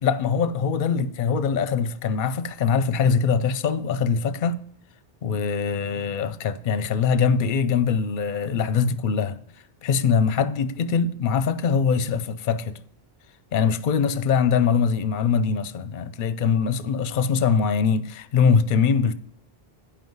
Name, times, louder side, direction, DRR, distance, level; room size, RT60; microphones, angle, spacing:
voice 1, 0.0-4.6 5.2-9.4 9.8-12.8 13.5-19.1, left 6 dB, 60° left, 0.7 m, -22 dB
8.8 x 5.4 x 7.9 m
omnidirectional pair, 1.1 m